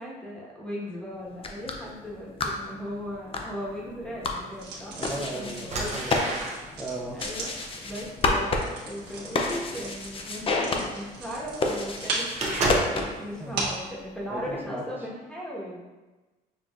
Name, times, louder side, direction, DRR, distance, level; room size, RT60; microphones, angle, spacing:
voice 1, 0.0-4.9 5.3-6.2 7.1-15.8, equal, 5° left, -6 dB, 1.4 m, -37 dB
sound 1, 1.3-13.4, left 3 dB, 35° left, 0.5 m, -31 dB
sound 2, 4.2-4.3 5.0-5.2 5.6-13.1 13.6-14.0 14.4-14.6, right 2 dB, 40° right, 0.9 m, -32 dB
sound 3, 4.5-13.9, right 3 dB, 75° right, 1.3 m, -38 dB
voice 2, 5.0-6.4 6.8-7.2 13.4-13.7 14.3-14.8, right 2 dB, 10° right, -2 dB, 0.8 m, -36 dB
6.3 x 2.8 x 2.5 m, 1.2 s
cardioid pair, 110°, 17 cm